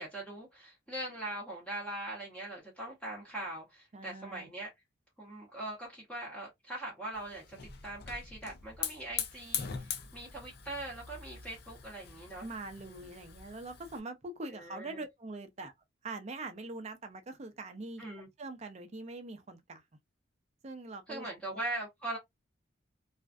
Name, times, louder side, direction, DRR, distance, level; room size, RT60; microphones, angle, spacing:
voice 1, 0.0-4.7 5.2-7.6 7.8-12.5 13.0-13.1 14.5-15.0 18.0-18.3 21.1-22.2, right 1 dB, 5° left, 0.8 m, -41 dB
voice 2, 3.9-4.5 12.4-15.7 16.0-18.0 18.4-19.8 20.6-21.3 21.5-21.6, right 2 dB, 35° right, 0.5 m, -43 dB
Hiss / Fire, 7.1-14.0, left 7 dB, 55° left, 0.5 m, -42 dB
2.5 x 2.2 x 2.3 m
head